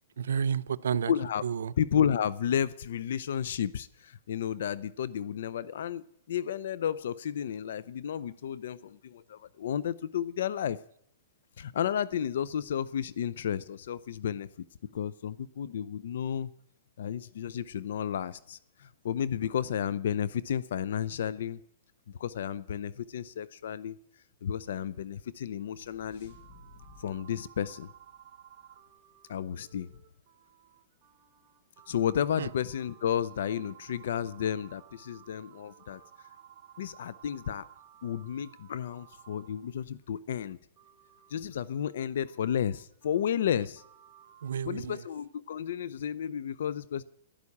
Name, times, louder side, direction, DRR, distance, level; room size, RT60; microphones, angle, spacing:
voice 1, 0.2-1.1 1.4-1.7 32.4-32.5 44.4-45.0, right 7 dB, 90° right, 14 dB, 0.6 m, -31 dB
voice 2, 1.1-1.4 1.8-10.8 11.6-14.5 14.9-16.5 17.0-21.6 22.2-24.0 24.4-26.4 27.0-27.9 29.3-29.9 31.9-36.0 36.8-37.7 38.0-40.6 41.3-43.8 44.7-47.0, left 9 dB, 75° left, 18 dB, 0.5 m, -32 dB
sound 1, 25.2-28.9, left 3 dB, 55° left, 5.1 m, -57 dB
sound 2, 26.3-40.1 40.8-44.6, right 10 dB, 30° right, 4.3 m, -56 dB
12.0 x 11.0 x 8.5 m, 0.70 s
hypercardioid pair, 145°, 0 cm